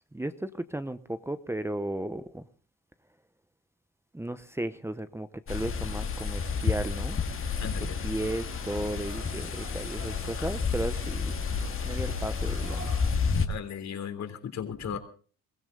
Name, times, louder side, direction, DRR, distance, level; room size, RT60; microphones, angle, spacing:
voice 1, 0.1-2.5 4.1-7.2 8.0-11.3 11.8-12.9, right 1 dB, 10° right, 11 dB, 1.0 m, -34 dB
sound 1, 5.5-13.5, left 5 dB, 45° left, 2.1 m, -30 dB
sound 2, 7.4-13.1, right 5 dB, 60° right, 4.9 m, -49 dB
voice 2, 7.6-8.0 10.3-10.5 13.5-15.0, left 8 dB, 65° left, 6 dB, 3.5 m, -36 dB
22.5 x 15.5 x 4.0 m, 0.41 s
cardioid pair, 90°, 30 cm